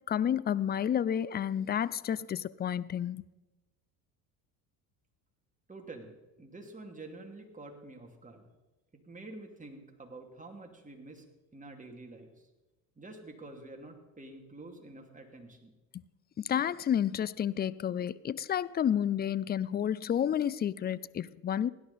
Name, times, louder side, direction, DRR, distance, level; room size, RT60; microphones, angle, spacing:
voice 1, 0.0-3.2 15.9-16.0 16.4-21.7, left 9 dB, 25° left, 0.4 m, -30 dB
voice 2, 5.7-8.4 9.0-11.2 11.5-12.3 13.0-15.7, right 2 dB, 15° right, 2.7 m, -48 dB
17.0 x 11.0 x 4.2 m
supercardioid pair, 70°, 45 cm